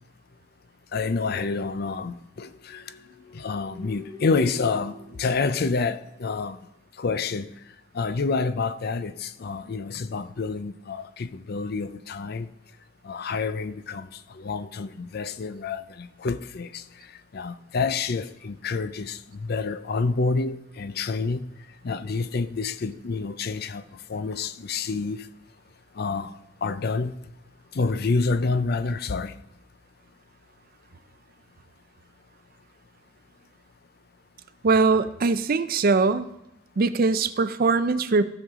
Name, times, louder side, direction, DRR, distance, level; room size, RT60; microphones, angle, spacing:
voice 1, 0.9-2.8 3.3-6.6 7.0-7.5 7.9-12.5 13.0-14.1 14.3-16.8 17.3-21.5 21.8-23.8 24.1-25.2 26.0-26.3 26.6-27.1 27.7-29.3, left 4 dB, 55° left, 0.5 m, -28 dB
sound 1, 2.5-6.3, left 2 dB, 25° left, 2.3 m, -47 dB
voice 2, 34.6-36.3 36.8-38.2, right 4 dB, 50° right, 0.5 m, -21 dB
15.0 x 6.4 x 3.7 m
head